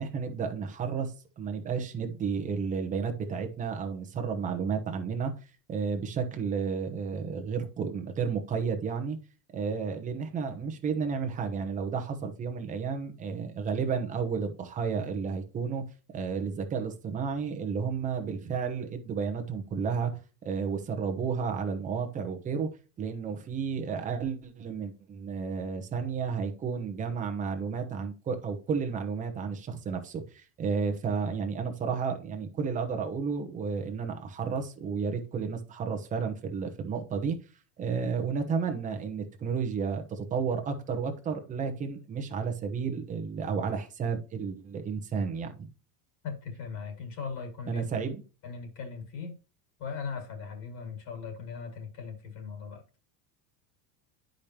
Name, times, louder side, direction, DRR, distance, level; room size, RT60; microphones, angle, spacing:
voice 1, 0.0-5.3 5.7-9.2 9.5-15.8 16.1-20.1 20.4-22.7 23.0-37.4 37.8-45.7 47.7-48.2, right 6 dB, 15° right, 0.9 m, -32 dB
voice 2, 46.2-47.8 48.4-49.4 49.8-52.8, left 5 dB, 40° left, 2.1 m, -39 dB
10.5 x 5.2 x 2.9 m
cardioid pair, 175°, 46 cm